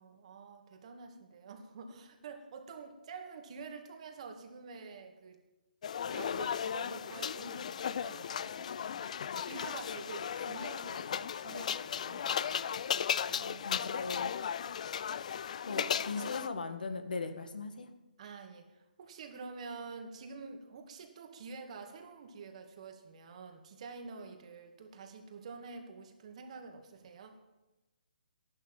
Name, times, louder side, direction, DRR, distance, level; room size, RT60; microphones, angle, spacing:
voice 1, 0.0-5.4 6.1-9.0 9.4-12.6 13.3-13.7 15.7-15.9 16.2-16.3 18.2-27.4, right 4 dB, 45° right, 5 dB, 2.5 m, -48 dB
sound 1, 5.8-16.5, left 8 dB, 50° left, 0.5 m, -36 dB
voice 2, 13.6-14.3 15.6-17.9, left 4 dB, 70° left, 7 dB, 1.9 m, -38 dB
14.0 x 11.5 x 7.5 m, 1.0 s
figure-of-eight pair, 140°, 5 cm